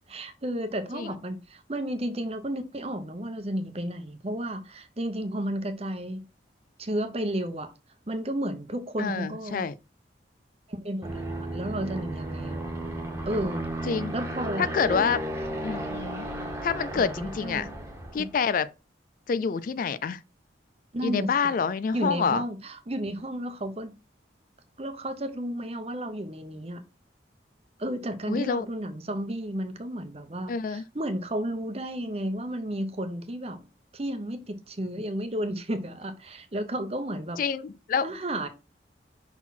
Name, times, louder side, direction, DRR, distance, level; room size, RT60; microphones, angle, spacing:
voice 1, 0.1-6.2 6.8-7.7 8.1-9.6 10.7-12.7 13.2-13.7 14.1-15.1 16.9-17.7 18.2-18.3 20.9-21.3 21.9-23.9 24.8-26.8 27.8-33.6 33.9-37.4 38.0-38.5, right 1 dB, 35° right, 0.9 m, -32 dB
voice 2, 9.0-9.7 13.9-14.1 14.6-15.2 15.6-16.3 16.6-17.7 18.1-18.7 19.3-20.2 21.0-22.4 28.3-28.7 30.5-30.8 37.4-38.1, left 6 dB, 45° left, 0.3 m, -27 dB
Aircraft, 11.0-18.3, right 1 dB, 15° right, 1.4 m, -34 dB
5.9 x 4.1 x 4.2 m
head